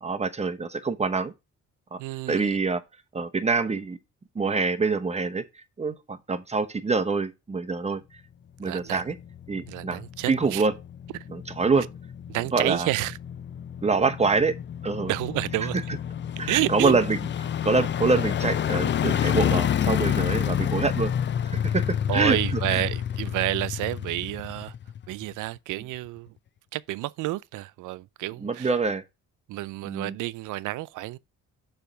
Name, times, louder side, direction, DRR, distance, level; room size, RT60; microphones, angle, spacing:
voice 1, 0.0-1.3 1.9-2.0 2.3-2.8 3.1-4.0 4.3-5.4 5.8-8.0 8.6-9.1 9.5-10.7 11.3-11.9 12.5-12.9 13.8-14.6 14.8-15.1 16.4-17.2 17.6-21.1 21.5-22.8 28.4-29.0 29.9-30.1, right 4 dB, 20° right, 0.9 m, -25 dB
voice 2, 2.0-2.6 8.6-9.0 9.7-10.7 11.8-11.9 12.3-13.2 15.1-15.8 16.5-17.0 22.1-24.7 25.1-26.3 26.7-28.8 29.5-31.2, right 17 dB, 85° right, 0.5 m, -30 dB
sound 1, 8.8-25.3 25.7-25.8, left 9 dB, 40° left, 0.5 m, -29 dB
6.9 x 3.5 x 5.0 m
cardioid pair, 90°, 30 cm